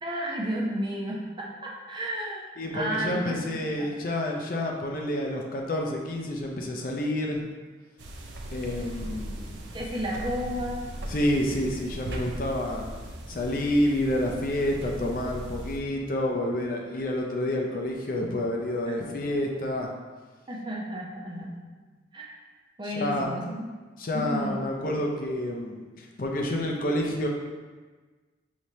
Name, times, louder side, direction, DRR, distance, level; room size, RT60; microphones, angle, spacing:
voice 1, 0.0-2.5 2.7-3.9 9.7-10.9 18.9-19.0 20.5-21.7 22.1-22.3 22.8-23.7 24.1-24.7, equal, 25° right, -2 dB, 0.5 m, -32 dB
voice 2, 2.6-7.4 8.5-9.6 11.1-12.9 13.3-19.9 22.9-23.3 24.0-27.3, left 1 dB, 50° left, 0 dB, 0.5 m, -29 dB
sound 1, 8.0-15.8, right 1 dB, 80° right, 0.5 m, -38 dB
5.0 x 3.1 x 2.7 m, 1.4 s
head